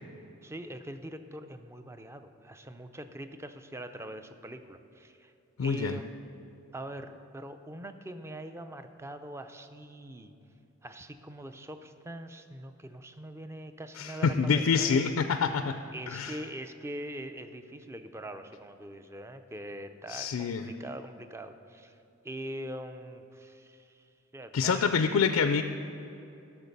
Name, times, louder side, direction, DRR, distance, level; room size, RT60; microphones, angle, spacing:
voice 1, 0.4-5.3 5.6-6.3 6.7-10.3 10.8-15.0 15.9-22.0 22.2-24.1 24.3-24.9, right 1 dB, 15° right, 9 dB, 0.4 m, -43 dB
voice 2, 5.6-6.0 14.0-15.8 16.1-16.4 20.1-20.6 24.5-25.6, left 5 dB, 90° left, 8 dB, 0.4 m, -26 dB
12.5 x 6.4 x 5.3 m, 2.8 s
head